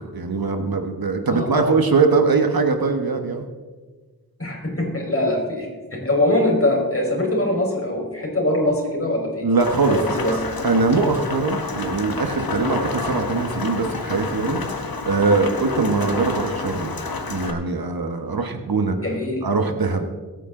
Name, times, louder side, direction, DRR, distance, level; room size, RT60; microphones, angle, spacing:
voice 1, 0.1-3.4 9.4-10.0 10.3-10.4 10.6-17.0 17.3-19.0 19.4-20.1, right 4 dB, 80° right, 6 dB, 1.4 m, -21 dB
voice 2, 1.3-1.7 4.4-9.4 9.9-10.4 19.0-19.4, left 1 dB, 40° left, -1 dB, 4.9 m, -22 dB
Rain, 9.6-17.5, left 4 dB, 75° left, 1.5 m, -29 dB
22.5 x 9.1 x 3.9 m, 1.4 s
wide cardioid pair, 70°, 35 cm